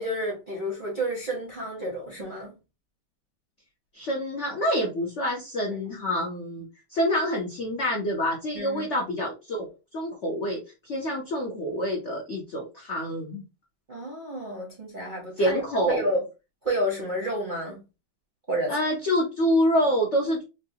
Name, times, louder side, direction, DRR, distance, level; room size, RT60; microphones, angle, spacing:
voice 1, 0.0-2.5 5.7-5.8 8.5-8.9 13.9-16.2 16.6-17.8 18.5-18.7, right 1 dB, 40° right, 0.7 m, -30 dB
voice 2, 3.9-13.4 15.4-16.1 18.7-20.4, equal, 65° left, 0.7 m, -27 dB
3.8 x 2.3 x 2.7 m
omnidirectional pair, 2.2 m